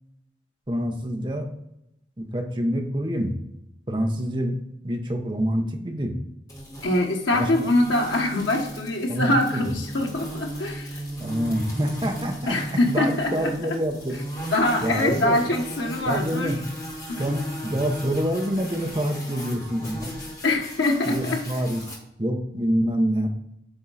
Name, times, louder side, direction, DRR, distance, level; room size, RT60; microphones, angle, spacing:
voice 1, 0.7-1.5 2.2-3.4 3.9-4.6 4.8-6.2 7.3-7.5 9.1-9.7 11.2-14.1 14.8-15.4 16.1-16.6 17.2-20.1 21.1-21.8 22.2-23.3, equal, 25° right, 3 dB, 0.9 m, -26 dB
sound 1, 6.5-21.9, equal, 20° left, 2.4 m, -37 dB
voice 2, 6.8-11.0 12.5-13.5 14.5-16.6 17.1-17.2 20.4-21.4, left 1 dB, 90° left, 1 dB, 1.4 m, -24 dB
8.9 x 3.7 x 4.1 m, 0.82 s
head